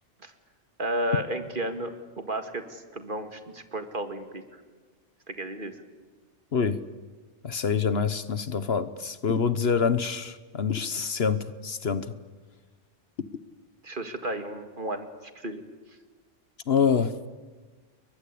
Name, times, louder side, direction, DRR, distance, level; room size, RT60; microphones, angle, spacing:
voice 1, 0.8-4.4 5.3-5.8 13.8-15.6, right 1 dB, 45° right, 8 dB, 2.3 m, -33 dB
voice 2, 7.4-12.1 16.7-17.1, left 6 dB, 60° left, 13 dB, 1.3 m, -26 dB
29.5 x 23.0 x 8.5 m, 1.4 s
omnidirectional pair, 1.2 m